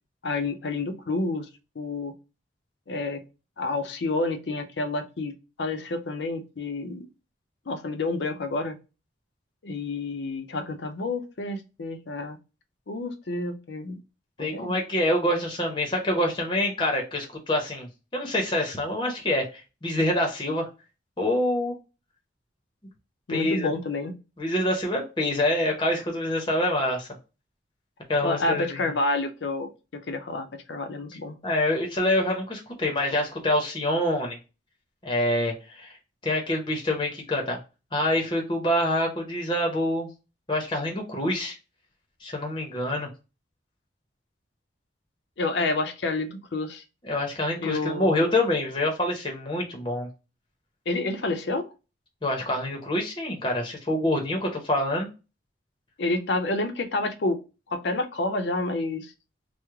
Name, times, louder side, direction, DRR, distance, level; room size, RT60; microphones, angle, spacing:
voice 1, 0.2-1.5 1.8-2.1 2.9-3.2 3.6-5.3 5.6-7.1 7.7-8.8 9.6-12.4 12.9-14.0 14.4-14.7 23.3-24.1 28.2-31.4 45.4-46.8 47.6-48.3 50.9-51.7 56.0-57.4 57.7-59.1, left 2 dB, 70° left, 7 dB, 0.6 m, -29 dB
voice 2, 14.4-20.7 21.2-21.7 23.3-23.7 24.4-27.1 28.1-28.8 31.4-34.4 35.0-35.9 36.2-37.6 37.9-40.1 40.5-41.5 42.2-43.1 47.0-50.1 52.2-55.1, left 1 dB, 25° left, 1 dB, 0.7 m, -26 dB
3.1 x 2.1 x 3.5 m, 0.30 s
head